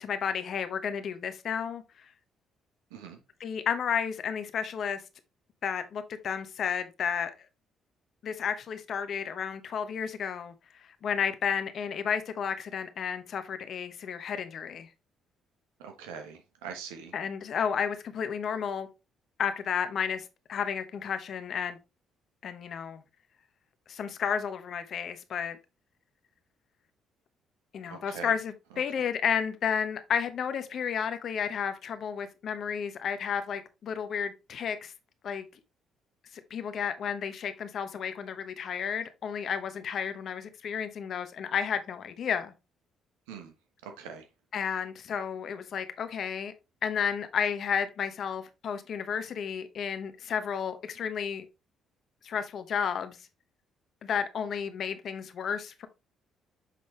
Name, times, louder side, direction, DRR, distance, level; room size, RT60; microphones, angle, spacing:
voice 1, 0.0-2.1 3.4-5.0 5.6-7.3 8.2-14.9 17.1-18.9 19.4-21.8 22.4-23.0 23.9-25.6 27.7-34.9 35.2-35.5 36.5-42.5 44.5-46.5 46.8-51.4 52.2-53.2 54.0-55.9, left 7 dB, 60° left, 1.0 m, -32 dB
voice 2, 15.8-17.1 27.9-28.3 28.9-29.0 43.3-43.5 43.8-44.3, right 6 dB, 85° right, 1.1 m, -43 dB
7.5 x 3.9 x 3.2 m
hypercardioid pair, 55°, 0 cm